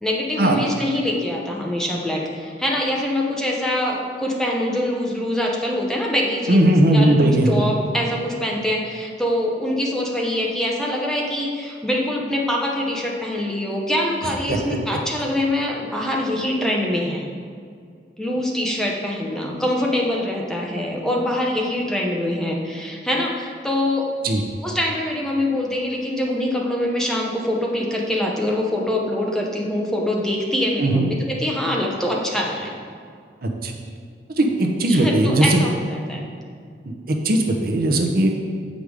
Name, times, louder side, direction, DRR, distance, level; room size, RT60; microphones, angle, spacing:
voice 1, 0.0-17.3 18.2-24.1 24.6-32.8 34.9-36.2, left 1 dB, 5° left, -2 dB, 0.8 m, -24 dB
voice 2, 6.5-7.6 14.5-14.6 24.2-24.4 30.8-31.1 33.4-33.7 34.4-35.6 36.9-38.4, right 1 dB, 55° right, 2 dB, 0.7 m, -18 dB
7.9 x 5.2 x 4.8 m, 2.2 s
head